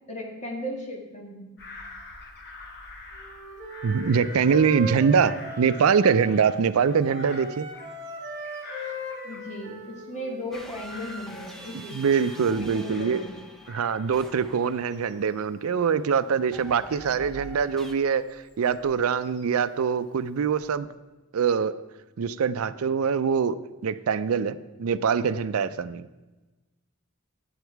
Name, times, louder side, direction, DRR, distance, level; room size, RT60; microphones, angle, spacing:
voice 1, 0.1-1.5 9.2-12.0 12.6-13.4, left 1 dB, 35° left, 0 dB, 1.8 m, -36 dB
Bird vocalization bird call bird song / Crow, 1.6-9.9 10.2-13.4 13.6-19.7 20.2-20.8, left 3 dB, 50° left, 1.2 m, -47 dB
Wind instrument woodwind instrument, 3.1-6.6 6.9-10.4, right 1 dB, 40° right, 2.1 m, -38 dB
voice 2, 3.8-7.7 11.9-13.2 13.7-20.9 21.3-21.7 22.2-23.6 23.8-26.1, right 6 dB, 80° right, 14 dB, 0.4 m, -24 dB
sound 1, 10.5-15.6 16.5-17.9, right 1 dB, ahead, 0.8 m, -45 dB
10.0 x 8.0 x 4.6 m, 1.1 s
head